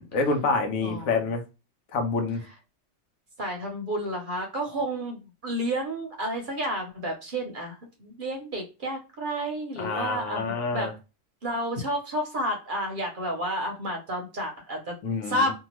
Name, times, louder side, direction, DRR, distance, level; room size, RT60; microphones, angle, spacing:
voice 1, 0.0-1.4 1.9-2.4 9.8-10.9 15.0-15.5, left 4 dB, 90° left, 1.1 m, -27 dB
voice 2, 0.8-1.1 3.4-10.9 11.4-14.9 15.2-15.5, equal, 50° right, 0.7 m, -31 dB
2.8 x 2.3 x 2.9 m
omnidirectional pair, 1.4 m